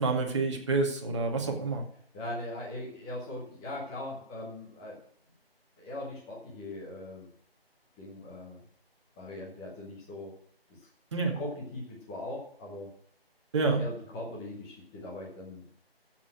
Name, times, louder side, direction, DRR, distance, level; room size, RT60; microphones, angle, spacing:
voice 1, 0.0-1.8 11.1-11.4 13.5-13.8, right 3 dB, 30° right, 1 dB, 2.1 m, -28 dB
voice 2, 2.1-4.9 5.8-7.3 8.0-8.6 9.2-10.3 11.3-12.9 13.6-15.6, left 1 dB, 5° left, -4 dB, 0.9 m, -40 dB
12.0 x 8.3 x 6.1 m, 0.63 s
figure-of-eight pair, 160°, 31 cm